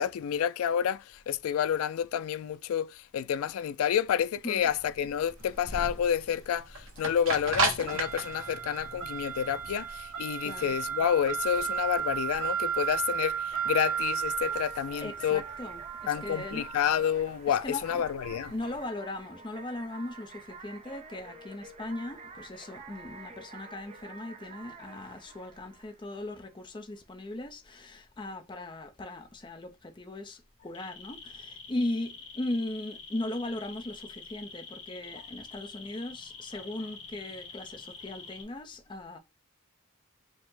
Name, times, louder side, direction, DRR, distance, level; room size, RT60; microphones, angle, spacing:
voice 1, 0.0-15.4 16.1-18.5, left 9 dB, 80° left, 0.3 m, -29 dB
sound 1, 4.6-18.7, right 6 dB, 70° right, 1.2 m, -34 dB
voice 2, 10.4-10.8 15.0-16.6 17.5-18.0 18.5-39.2, left 1 dB, 20° left, 0.5 m, -38 dB
sound 2, 13.1-26.6, right 4 dB, 30° right, 0.4 m, -49 dB
sound 3, 30.6-38.4, left 4 dB, 60° left, 1.6 m, -46 dB
5.1 x 2.0 x 3.6 m
head